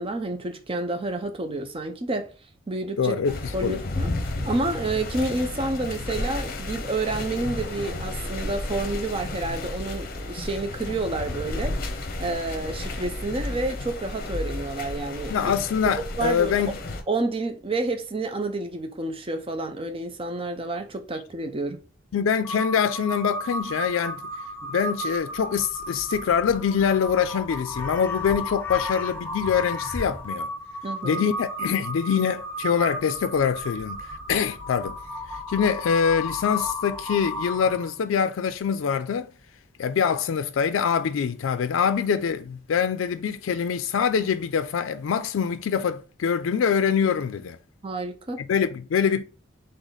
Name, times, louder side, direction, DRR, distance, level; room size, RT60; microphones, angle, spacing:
voice 1, 0.0-2.3 2.7-3.2 3.5-4.1 4.4-11.7 12.2-15.5 16.1-16.7 17.1-21.8 30.8-31.2 47.8-48.4, right 2 dB, 30° right, 0.6 m, -29 dB
voice 2, 3.0-3.8 15.3-16.7 22.1-24.2 24.7-30.5 31.0-35.0 35.5-39.3 39.8-47.6 48.4-49.2, left 7 dB, 85° left, 0.4 m, -24 dB
sound 1, 3.3-17.0, left 2 dB, 50° left, 0.8 m, -32 dB
Crow, 22.4-37.9, left 1 dB, 10° left, 0.8 m, -33 dB
3.8 x 3.3 x 4.0 m
head